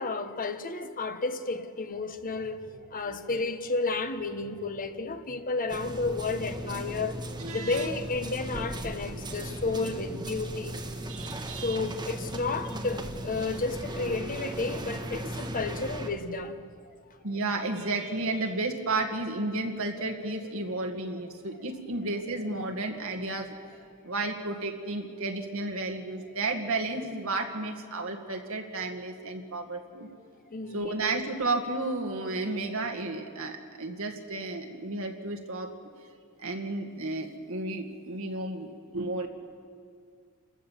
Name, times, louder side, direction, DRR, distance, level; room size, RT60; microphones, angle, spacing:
voice 1, 0.0-10.8 11.5-16.6 17.3-17.4 30.5-30.9, left 3 dB, 40° left, 1.1 m, -32 dB
sound 1, 1.8-9.5, equal, 40° right, 7.7 m, -55 dB
sound 2, 5.7-16.1, right 1 dB, 20° right, 1.4 m, -37 dB
voice 2, 7.4-7.9 11.1-11.8 17.2-23.5 24.0-30.1 30.7-35.7 36.4-39.3, right 2 dB, 70° right, 2.0 m, -32 dB
28.5 x 15.0 x 7.4 m
head